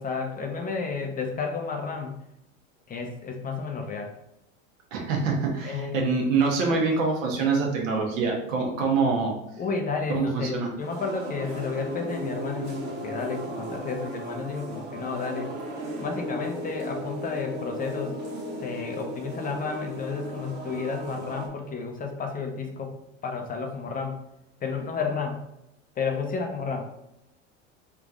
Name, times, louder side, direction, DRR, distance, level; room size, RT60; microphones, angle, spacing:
voice 1, 0.0-2.1 2.9-4.1 5.6-6.1 6.7-6.8 9.6-15.5 16.0-18.2 18.6-23.0 23.2-24.2 24.6-25.4 26.0-26.9, left 5 dB, 20° left, 3 dB, 0.6 m, -31 dB
voice 2, 4.9-9.3 10.1-10.7, right 4 dB, 75° right, 0 dB, 1.2 m, -25 dB
sound 1, 10.8-21.5, right 1 dB, 25° right, 1.1 m, -36 dB
3.6 x 2.8 x 3.6 m, 0.85 s
hypercardioid pair, 95°, 39 cm